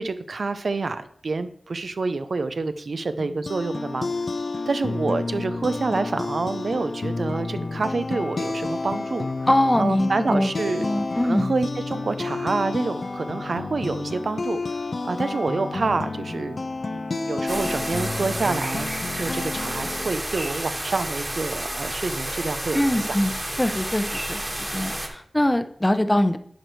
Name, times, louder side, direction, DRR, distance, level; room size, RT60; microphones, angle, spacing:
voice 1, 0.0-4.1 4.7-9.3 9.8-10.9 11.2-14.8 15.0-16.6 16.9-18.9 19.2-23.2, right 3 dB, 80° right, 11 dB, 0.6 m, -27 dB
sound 1, 3.2-20.1, left 3 dB, 65° left, 0.4 m, -30 dB
voice 2, 9.5-10.5 10.8-11.5 22.7-23.3 23.6-24.4 24.7-26.4, left 1 dB, 20° left, 10 dB, 0.7 m, -22 dB
sound 2, 17.5-25.1, right 1 dB, 25° right, 1.7 m, -30 dB
10.5 x 5.0 x 4.6 m, 0.63 s
wide cardioid pair, 50°, 0 cm